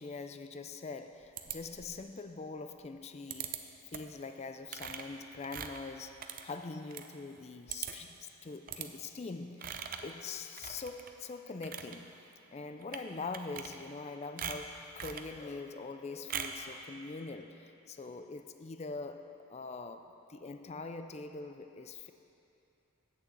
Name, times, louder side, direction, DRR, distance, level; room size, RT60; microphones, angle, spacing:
voice 1, 0.0-3.6 3.9-12.2 12.5-22.1, left 4 dB, 30° left, 8 dB, 0.4 m, -43 dB
sound 1, 1.4-2.1 3.3-3.6 3.9-4.2 4.7-7.1 7.4-7.5 7.7-8.1 8.7-8.9 9.6-10.1 10.6-11.1 11.5-12.0 12.8-13.1 13.3-14.1 14.4-15.3 16.3-16.7, right 8 dB, 40° right, 0.5 m, -41 dB
8.5 x 6.9 x 7.8 m, 2.8 s
head